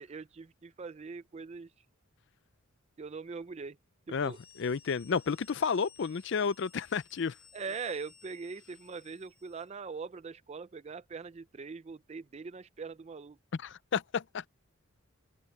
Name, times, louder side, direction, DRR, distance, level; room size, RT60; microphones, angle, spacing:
voice 1, 0.0-1.7 3.0-3.8 4.1-4.4 7.5-13.4, right 5 dB, 30° right, 0.3 m, -42 dB
voice 2, 4.1-7.4 13.5-14.5, left 5 dB, 55° left, 0.4 m, -31 dB
sound 1, 4.1-9.8, left 6 dB, 25° left, 1.7 m, -59 dB
head